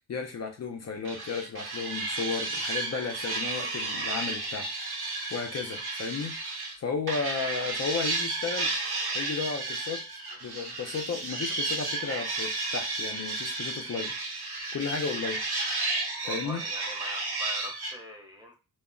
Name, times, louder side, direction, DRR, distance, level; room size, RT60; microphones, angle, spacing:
voice 1, 0.1-4.7 5.3-8.7 9.1-10.0 10.4-14.1 14.7-15.4 16.3-16.6, left 5 dB, 45° left, 0.4 m, -34 dB
sound 1, 1.0-6.8 7.1-17.9, right 3 dB, 80° right, 1.0 m, -32 dB
voice 2, 16.2-18.5, left 1 dB, 10° right, 0.5 m, -42 dB
2.2 x 2.0 x 3.6 m
wide cardioid pair, 150°, 37 cm